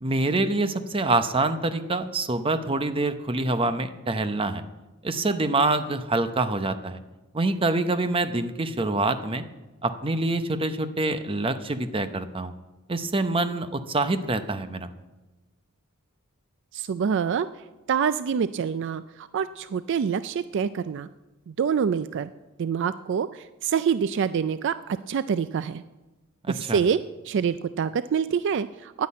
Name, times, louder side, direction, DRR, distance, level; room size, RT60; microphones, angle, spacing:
voice 1, 0.0-4.6 5.0-7.0 7.3-9.4 9.8-12.5 12.9-14.9 26.5-26.8, right 2 dB, 25° right, 10 dB, 0.7 m, -26 dB
voice 2, 16.7-17.5 17.9-21.1 21.5-22.3 22.6-25.8 26.5-27.0 27.2-29.1, right 7 dB, 60° right, 14 dB, 0.3 m, -26 dB
10.5 x 9.8 x 8.4 m, 1.1 s
head